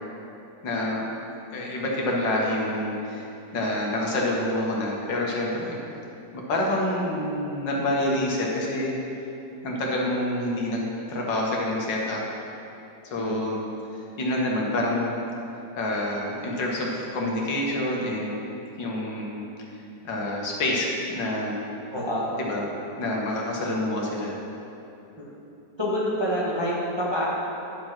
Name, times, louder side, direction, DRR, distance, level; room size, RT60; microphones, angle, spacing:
voice 1, 0.6-1.0 1.5-3.3 3.5-5.8 6.3-9.0 9.6-12.2 13.0-13.6 14.2-15.2 15.8-18.3 18.8-19.4 20.0-21.5 22.5-22.7 23.0-24.4, left 1 dB, 80° left, -2 dB, 2.0 m, -27 dB
voice 2, 21.9-22.3 25.8-27.3, equal, 20° right, -6 dB, 1.0 m, -27 dB
10.0 x 5.2 x 5.9 m, 2.9 s
omnidirectional pair, 2.0 m